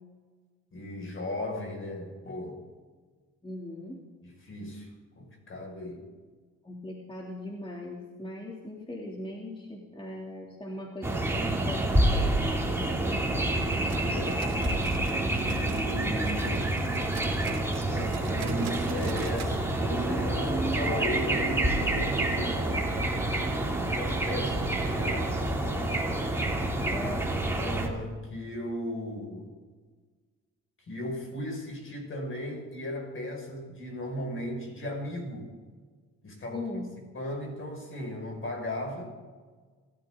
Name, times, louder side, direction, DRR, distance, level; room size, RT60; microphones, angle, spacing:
voice 1, 0.7-2.7 4.2-4.9 5.2-6.1 13.9-14.5 15.3-16.8 17.9-22.9 23.8-26.0 27.6-29.5 30.9-35.5 36.2-36.6 37.1-39.2, left 1 dB, 45° left, 1 dB, 6.0 m, -37 dB
voice 2, 3.4-4.0 6.6-13.2 26.9-27.3 36.5-36.9, left 1 dB, 15° left, -2 dB, 3.0 m, -39 dB
sound 1, 11.0-27.9, right 1 dB, 10° right, 3.1 m, -28 dB
sound 2, 13.7-16.0 16.2-19.6 19.8-19.9 20.3-20.4 21.0-21.1, right 7 dB, 60° right, 3.0 m, -45 dB
27.0 x 13.5 x 3.9 m, 1.4 s
cardioid pair, 90°, 30 cm